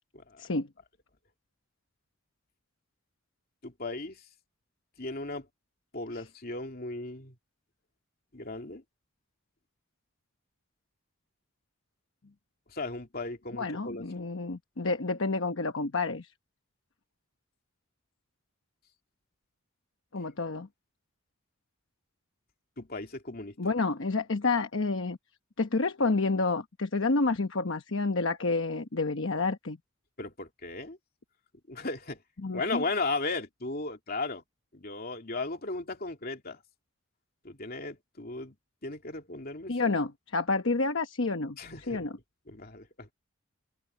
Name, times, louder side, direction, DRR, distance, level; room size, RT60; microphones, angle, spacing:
voice 1, 3.6-4.2 5.0-5.5 5.9-7.3 8.3-8.8 12.7-14.3 22.8-23.7 30.2-31.0 31.7-32.2 32.5-34.4 34.7-36.6 37.4-38.5 38.8-39.7 41.6-42.0 42.5-43.1, left 3 dB, 45° left, 2.8 m, -36 dB
voice 2, 13.5-16.3 20.1-20.7 23.6-25.2 25.6-29.8 32.4-32.8 39.7-41.6 41.9-42.2, left 3 dB, 65° left, 1.0 m, -29 dB
head